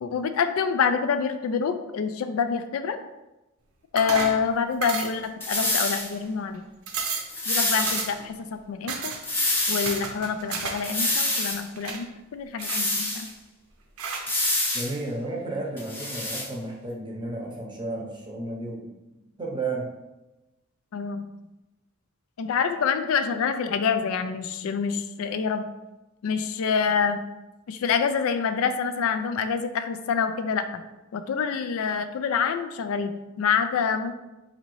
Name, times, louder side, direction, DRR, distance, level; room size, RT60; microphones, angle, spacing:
voice 1, 0.0-3.0 3.9-6.6 7.5-9.1 9.7-13.3 20.9-21.3 22.4-25.6 26.2-27.2 27.7-30.6 31.1-34.1, left 6 dB, 75° left, 9 dB, 0.4 m, -26 dB
sound 1, 4.0-4.4 4.8-5.3 5.6-6.2 6.5-6.6 6.9-7.3 7.8-8.3 8.9-9.2 9.9-10.9 11.2-12.0 12.6-13.3 14.0-14.3, right 4 dB, 80° right, 0.6 m, -32 dB
sound 2, 5.4-6.1 7.3-8.1 9.2-10.0 10.8-11.6 12.6-13.3 14.3-14.9 15.8-16.5, left 2 dB, 10° left, 0.7 m, -26 dB
voice 2, 14.7-19.9, right 2 dB, 20° right, -1 dB, 0.7 m, -33 dB
5.0 x 2.7 x 3.0 m, 1.0 s
head